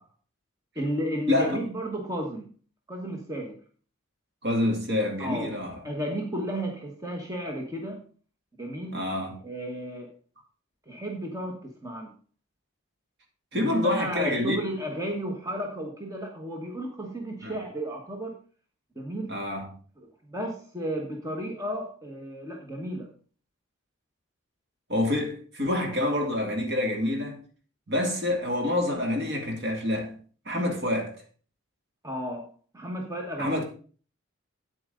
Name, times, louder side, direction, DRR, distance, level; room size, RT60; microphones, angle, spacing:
voice 1, 0.7-2.5 2.9-3.6 5.2-5.5 5.8-8.0 8.6-9.0 9.4-10.1 10.9-12.1 13.5-18.4 18.9-19.4 20.0-23.1 32.0-32.5 32.7-33.6, equal, 15° right, 1.4 m, -33 dB
voice 2, 1.3-1.6 4.4-5.8 8.9-9.4 13.5-14.6 17.4-17.5 19.3-19.7 24.9-27.4 27.9-30.2 30.5-31.2 33.4-33.6, left 1 dB, 50° right, 2.3 m, -27 dB
8.9 x 8.7 x 3.9 m
head